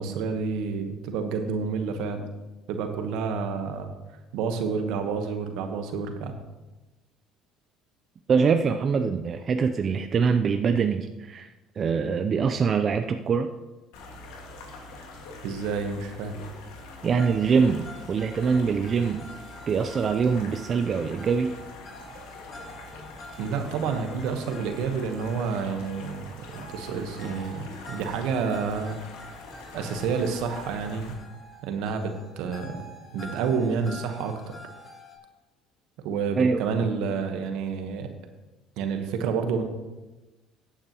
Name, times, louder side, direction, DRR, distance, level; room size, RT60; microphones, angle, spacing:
voice 1, 0.0-2.2 2.7-3.9 4.3-6.4 15.4-16.3 23.4-29.0 29.7-31.1 31.7-32.8 33.1-34.4 36.0-38.1 38.8-39.6, right 5 dB, 75° right, 6 dB, 1.2 m, -29 dB
voice 2, 8.3-11.5 11.8-13.5 17.0-19.3 19.7-21.6 36.4-36.6, right 5 dB, 45° right, 7 dB, 0.5 m, -24 dB
sound 1, 13.9-31.1, left 3 dB, 80° left, 1.8 m, -44 dB
sound 2, 17.2-35.2, equal, 35° left, 3.0 m, -47 dB
14.5 x 8.7 x 3.0 m, 1.1 s
supercardioid pair, 75°, 0 cm